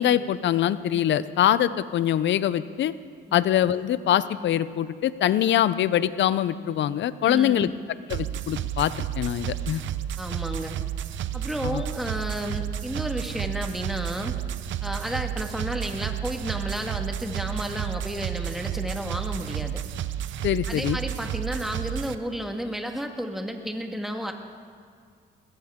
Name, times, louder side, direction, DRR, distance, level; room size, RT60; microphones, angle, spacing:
voice 1, 0.0-2.9 3.3-7.7 8.1-9.8 11.6-11.8 20.4-21.0, left 11 dB, 70° left, 16 dB, 0.6 m, -23 dB
voice 2, 7.2-7.7 10.2-10.8 11.3-14.4 14.8-19.8 20.7-24.3, equal, ahead, 4 dB, 1.7 m, -32 dB
sound 1, 8.1-22.1, right 11 dB, 70° right, 0.7 m, -31 dB
20.5 x 16.5 x 3.7 m, 2.2 s
cardioid pair, 90°, 20 cm